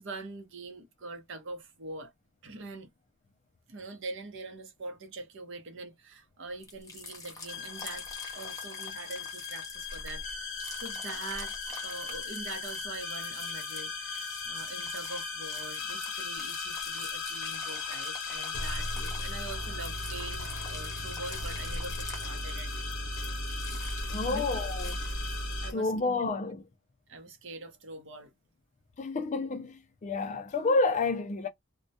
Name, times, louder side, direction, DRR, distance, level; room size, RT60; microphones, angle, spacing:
voice 1, 0.0-2.1 2.4-2.9 3.7-8.1 8.3-22.7 24.3-24.4 25.6-25.9 27.1-28.3, right 3 dB, 60° right, 0.7 m, -43 dB
sound 1, 6.6-25.6, left 2 dB, 15° left, 0.8 m, -45 dB
sound 2, 7.5-25.7, left 3 dB, 65° left, 0.7 m, -37 dB
voice 2, 24.1-25.0 25.7-26.7 29.0-31.5, left 3 dB, 35° left, 0.4 m, -29 dB
2.2 x 2.1 x 2.6 m
head